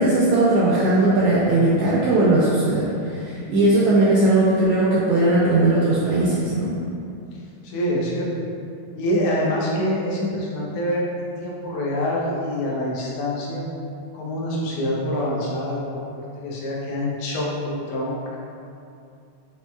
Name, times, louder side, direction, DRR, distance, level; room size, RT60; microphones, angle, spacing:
voice 1, 0.0-6.7, right 2 dB, 90° right, -7 dB, 1.4 m, -18 dB
voice 2, 7.6-8.3 8.9-13.6 14.1-16.1 16.4-18.4, left 1 dB, 85° left, -4 dB, 2.1 m, -25 dB
5.3 x 2.9 x 2.3 m, 2.6 s
omnidirectional pair, 3.3 m